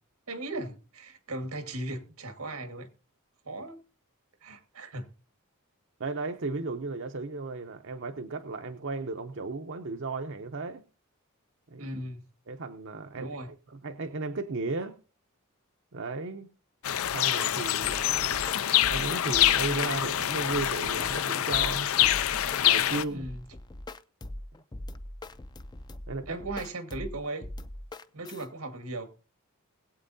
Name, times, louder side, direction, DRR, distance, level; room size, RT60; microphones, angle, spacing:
voice 1, 0.3-2.9 3.4-3.8 4.4-5.1 11.8-12.2 13.2-13.5 23.1-23.4 26.3-27.5 28.1-29.1, right 2 dB, 90° right, 1.7 m, -37 dB
voice 2, 6.0-10.8 11.7-11.9 12.5-15.0 15.9-16.5 17.1-21.9 22.6-23.3 26.1-26.4, right 3 dB, 60° right, 0.7 m, -35 dB
sound 1, 16.8-23.0, left 12 dB, 70° left, 0.5 m, -26 dB
sound 2, 17.8-28.5, left 1 dB, 20° left, 0.5 m, -42 dB
21.0 x 8.3 x 2.7 m
head